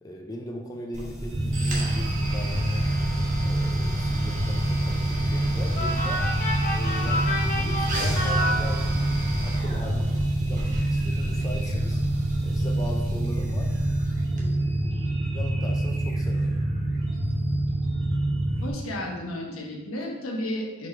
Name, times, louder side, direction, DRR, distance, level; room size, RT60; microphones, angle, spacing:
voice 1, 0.0-6.2 6.7-12.0 12.4-13.8 14.3-16.5, equal, 15° left, 0 dB, 0.5 m, -39 dB
sound 1, 0.9-14.4, equal, 35° right, 1.1 m, -33 dB
sound 2, 1.3-18.7, right 1 dB, 70° right, 1.4 m, -26 dB
sound 3, 5.7-9.3, equal, 40° left, 1.1 m, -29 dB
voice 2, 18.6-20.9, left 1 dB, 90° left, 0 dB, 1.2 m, -33 dB
5.0 x 4.3 x 4.4 m, 1.2 s
head